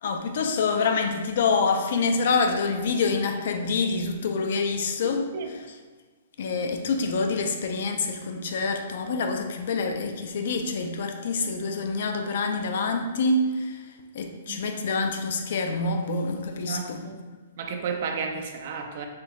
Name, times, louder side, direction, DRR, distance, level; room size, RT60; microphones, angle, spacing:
voice 1, 0.0-5.8 6.4-17.1, left 4 dB, 50° left, 5 dB, 0.4 m, -26 dB
voice 2, 16.6-17.2 17.6-19.1, right 5 dB, 40° right, 4 dB, 0.4 m, -32 dB
4.4 x 3.6 x 2.3 m, 1.4 s
hypercardioid pair, 175°, 0 cm